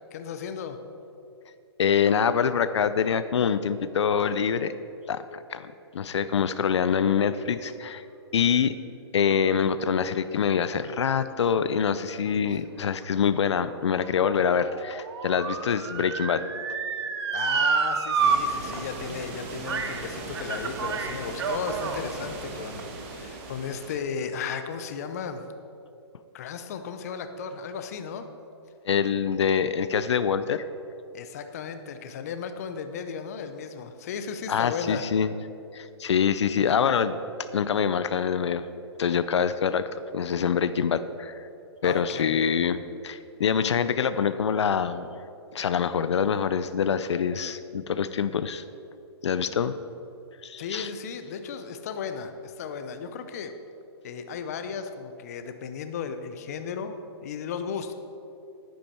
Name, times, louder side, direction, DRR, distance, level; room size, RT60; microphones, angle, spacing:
voice 1, 0.1-0.8 17.3-25.4 26.3-28.3 31.1-35.0 36.6-36.7 41.8-42.4 50.6-53.6 54.0-57.9, left 6 dB, 35° left, 8 dB, 0.6 m, -35 dB
voice 2, 1.8-4.8 5.1-8.1 8.3-8.7 9.1-16.4 28.9-30.6 34.5-35.3 35.7-37.2 37.5-38.6 39.0-41.5 41.8-45.1 45.5-48.6 49.2-49.7 50.4-50.9, left 7 dB, 85° left, 13 dB, 0.5 m, -25 dB
Motor vehicle (road) / Siren, 13.2-18.4 18.7-18.8 19.7-20.0 20.3-22.0 22.7-22.8, right 6 dB, 65° right, 1.0 m, -29 dB
sound 1, 18.2-24.0, right 3 dB, 30° right, 1.2 m, -38 dB
10.5 x 10.0 x 4.4 m, 2.8 s
hypercardioid pair, 170°, 14 cm